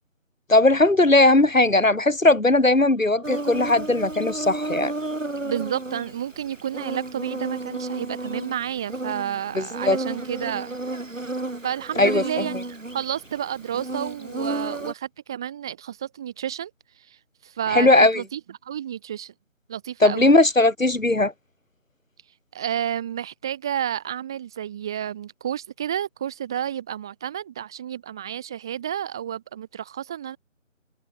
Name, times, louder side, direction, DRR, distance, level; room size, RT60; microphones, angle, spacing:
voice 1, 0.5-4.9 9.6-10.0 12.0-12.4 17.7-18.2 20.0-21.3, left 2 dB, 80° left, 6.0 m, -18 dB
Insect, 3.2-14.9, right 2 dB, 70° right, 7.9 m, -33 dB
voice 2, 5.4-10.8 11.6-16.7 17.0-19.3 19.7-20.3 22.5-30.4, right 10 dB, 5° right, 2.3 m, -31 dB
figure-of-eight pair, 175°, 39 cm